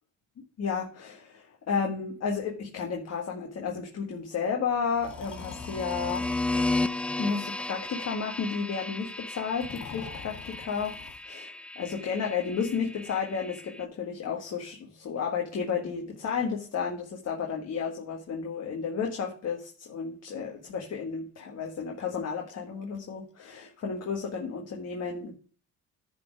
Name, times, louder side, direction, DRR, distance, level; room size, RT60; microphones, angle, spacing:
voice 1, 0.6-6.2 6.5-6.6 7.2-11.0 11.2-25.3, left 6 dB, 55° left, 1 dB, 1.6 m, -32 dB
Breathing, 5.0-6.4 7.2-7.8 9.5-11.2, left 7 dB, 85° left, 2.3 m, -45 dB
sound 1, 5.0-13.8, left 2 dB, 5° left, 0.5 m, -34 dB
10.5 x 4.2 x 5.0 m, 0.41 s
cardioid pair, 90°, 30 cm